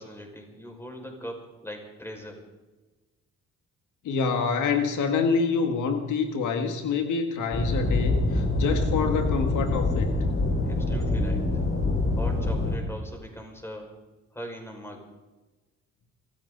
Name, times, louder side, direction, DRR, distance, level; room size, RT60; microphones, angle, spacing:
voice 1, 0.0-2.4 10.6-11.5 12.1-14.0 14.3-15.1, equal, 10° left, 2 dB, 5.4 m, -40 dB
voice 2, 4.1-10.1, left 5 dB, 80° left, 6 dB, 1.8 m, -26 dB
sound 1, 7.5-12.8, left 2 dB, 45° left, 5.7 m, -25 dB
24.5 x 14.5 x 4.0 m, 1.2 s
cardioid pair, 90°, 30 cm